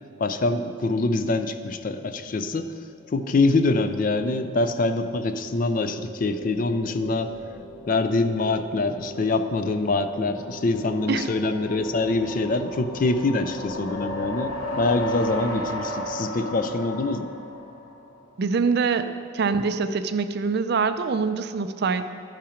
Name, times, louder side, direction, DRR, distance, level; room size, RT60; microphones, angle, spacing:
voice 1, 0.2-2.7 3.1-7.3 7.9-17.3, left 2 dB, 40° left, 9 dB, 0.4 m, -24 dB
sound 1, 3.0-18.3, left 1 dB, 70° left, 0.9 m, -36 dB
voice 2, 18.4-22.1, right 5 dB, 50° right, 11 dB, 0.4 m, -24 dB
12.0 x 5.7 x 5.0 m, 2.4 s
head